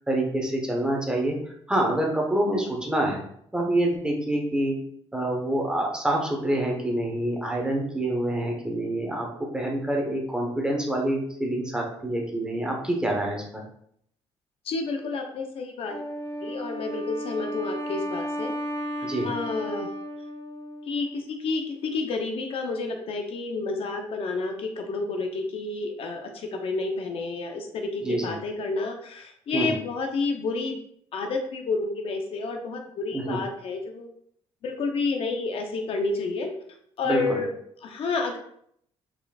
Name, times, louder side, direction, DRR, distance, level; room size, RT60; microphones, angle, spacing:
voice 1, 0.0-3.2 3.5-4.7 5.1-9.3 9.5-13.4 19.0-19.3 28.0-28.3 29.5-29.7 33.1-33.4 37.0-37.4, right 1 dB, 5° right, 0 dB, 1.0 m, -26 dB
sound 1, 6.4-13.3, right 5 dB, 65° right, 0.9 m, -50 dB
voice 2, 14.6-16.0 16.4-18.5 19.2-19.9 20.9-30.8 31.1-34.1 34.6-36.5 37.0-37.5 37.8-38.4, left 3 dB, 55° left, 4 dB, 0.6 m, -30 dB
Wind instrument woodwind instrument, 15.9-21.3, equal, 30° left, 1.5 m, -34 dB
5.1 x 4.3 x 2.3 m, 0.68 s
cardioid pair, 125°, 11 cm